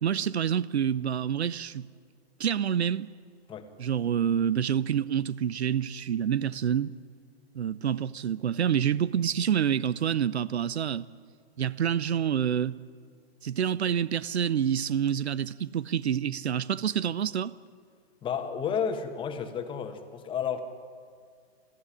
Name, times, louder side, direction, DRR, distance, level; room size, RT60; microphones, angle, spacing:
voice 1, 0.0-1.9 2.4-3.1 3.8-6.9 7.5-11.1 11.6-12.8 13.4-17.5, right 9 dB, 85° right, 0.8 m, -27 dB
voice 2, 18.2-20.6, left 7 dB, 15° left, 1.5 m, -31 dB
29.5 x 13.0 x 10.0 m
hypercardioid pair, 140°, 32 cm